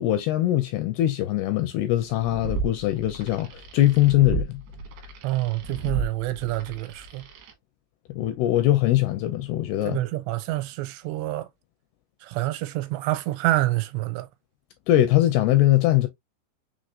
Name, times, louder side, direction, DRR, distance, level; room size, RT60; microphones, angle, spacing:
voice 1, 0.0-4.6 8.1-10.0 14.9-16.1, left 14 dB, 80° left, 2.3 m, -21 dB
sound 1, 2.0-7.5, right 3 dB, 70° right, 2.7 m, -34 dB
voice 2, 5.2-7.2 9.9-11.5 12.2-14.3, right 17 dB, 85° right, 2.8 m, -27 dB
6.5 x 3.2 x 2.4 m
omnidirectional pair, 5.1 m